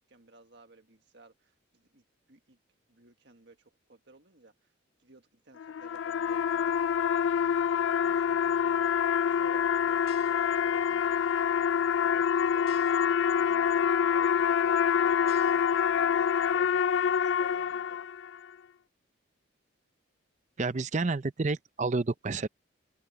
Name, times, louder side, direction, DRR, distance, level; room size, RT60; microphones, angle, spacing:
voice 1, 0.1-2.0 2.3-2.6 2.9-4.7 5.0-7.2 8.0-8.9 9.2-11.0 11.6-11.7 12.0-16.9 17.2-18.0, right 2 dB, 55° right, 1.7 m, -56 dB
sound 1, 5.6-18.4, left 8 dB, 65° left, 0.3 m, -26 dB
sound 2, 8.4-8.9 9.4-15.8, left 3 dB, 85° left, 4.4 m, -53 dB
voice 2, 20.6-22.5, right 3 dB, 35° right, 0.5 m, -29 dB
open air
head